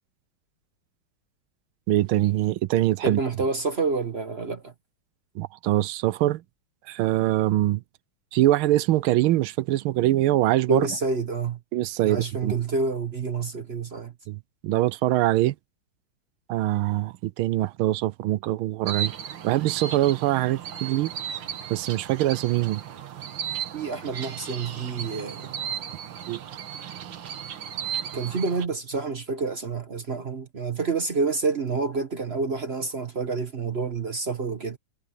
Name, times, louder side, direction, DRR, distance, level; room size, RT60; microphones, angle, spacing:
voice 1, 1.9-3.2 5.3-6.4 6.9-7.8 8.3-10.9 11.7-12.5 14.3-15.5 16.5-19.1 19.4-21.1 21.7-22.8 26.3-26.4, right 15 dB, 85° right, 1.5 m, -23 dB
voice 2, 3.0-4.7 10.7-11.6 12.0-14.1 23.7-25.6 28.1-34.8, right 4 dB, 40° right, 1.0 m, -28 dB
sound 1, 18.9-28.7, right 9 dB, 65° right, 2.0 m, -35 dB
omnidirectional pair, 2.3 m